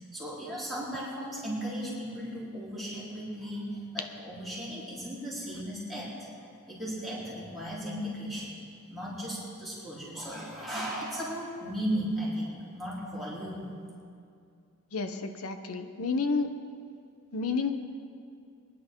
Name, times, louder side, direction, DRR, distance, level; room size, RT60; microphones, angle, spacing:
voice 1, 0.1-6.1 6.7-8.5 8.9-13.7, equal, ahead, -9 dB, 4.1 m, -36 dB
voice 2, 14.9-16.5 17.3-17.7, left 4 dB, 85° left, 8 dB, 0.9 m, -30 dB
24.5 x 10.5 x 3.8 m, 2.4 s
head